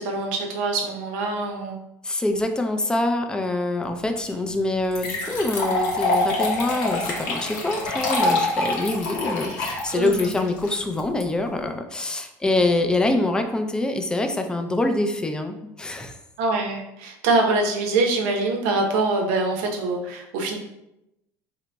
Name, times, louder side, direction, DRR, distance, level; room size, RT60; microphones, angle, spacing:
voice 1, 0.0-1.8 9.9-10.4 16.4-20.6, right 3 dB, 80° right, 2 dB, 0.7 m, -24 dB
voice 2, 2.0-16.2, left 2 dB, 10° left, 6 dB, 0.4 m, -25 dB
sound 1, 4.3-4.4 4.9-11.2, left 2 dB, 75° left, 0.9 m, -25 dB
3.8 x 2.9 x 2.2 m, 0.87 s
supercardioid pair, 115°, 7 cm